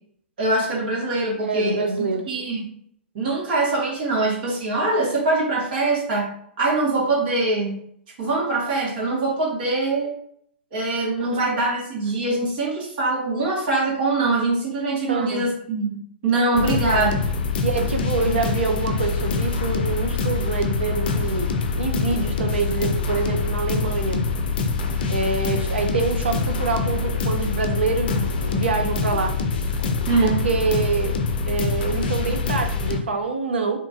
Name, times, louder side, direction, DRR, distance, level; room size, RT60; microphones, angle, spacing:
voice 1, 0.4-2.7 3.1-6.3 6.6-7.8 8.2-10.1 10.7-17.2 30.1-30.3, right 2 dB, 55° right, -5 dB, 1.4 m, -23 dB
voice 2, 1.4-2.3 11.2-11.4 15.1-15.5 16.7-17.1 17.6-24.3 25.1-29.4 30.2-33.8, right 4 dB, 75° right, 5 dB, 0.5 m, -26 dB
sound 1, 16.5-33.0, left 4 dB, 60° left, 0.4 m, -25 dB
2.9 x 2.4 x 2.4 m, 0.67 s
figure-of-eight pair, 115°, 6 cm